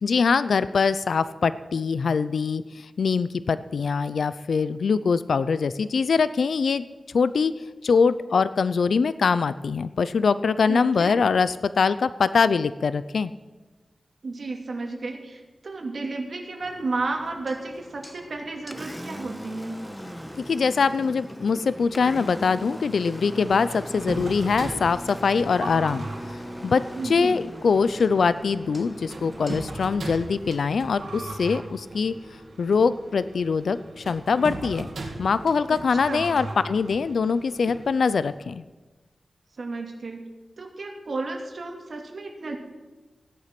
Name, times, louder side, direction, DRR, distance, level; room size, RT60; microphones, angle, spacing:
voice 1, 0.0-6.8 7.1-7.5 7.8-13.3 20.4-26.1 26.3-32.1 32.6-34.9 35.2-38.6, left 5 dB, 80° left, 14 dB, 0.4 m, -23 dB
voice 2, 10.7-11.2 14.2-19.8 27.0-27.4 35.7-35.8 36.1-36.3 39.6-40.2 40.6-42.6, right 3 dB, 55° right, 2 dB, 2.4 m, -32 dB
Engine, 16.6-30.6, equal, ahead, 1.2 m, -40 dB
sound 1, 23.7-38.4, right 2 dB, 85° right, 2.3 m, -38 dB
16.5 x 10.5 x 6.0 m, 1.2 s
wide cardioid pair, 125°, 0 cm